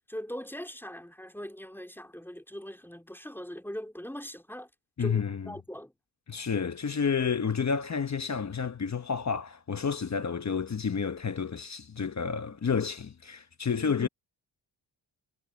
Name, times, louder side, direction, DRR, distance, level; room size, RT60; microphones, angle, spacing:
voice 1, 0.1-4.7 5.0-5.9 13.8-14.1, equal, 5° left, 3.6 m, -41 dB
voice 2, 5.0-5.5 6.3-14.1, left 6 dB, 35° left, 1.2 m, -30 dB
cardioid pair, 85°, 45 cm